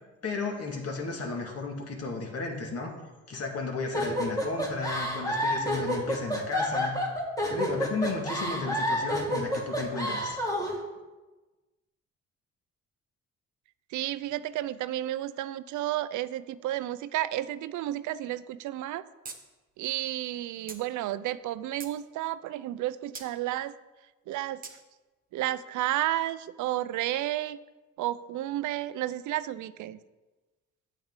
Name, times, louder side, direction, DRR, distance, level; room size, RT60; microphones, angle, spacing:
voice 1, 0.2-2.9 3.3-7.0 7.5-10.4, left 3 dB, 50° left, 2 dB, 1.9 m, -33 dB
sound 1, 3.9-10.8, equal, 10° left, 2.1 m, -29 dB
voice 2, 13.9-19.0 19.8-23.7 24.3-24.6 25.3-27.6 28.0-30.0, right 14 dB, 80° right, 15 dB, 0.5 m, -32 dB
sound 2, 19.2-19.4 19.7-19.8 20.7-20.8 21.4-22.0 23.1-23.3 24.6-24.8, right 4 dB, 30° right, 1.2 m, -41 dB
8.8 x 7.5 x 3.7 m, 1.2 s
cardioid pair, 90°, 30 cm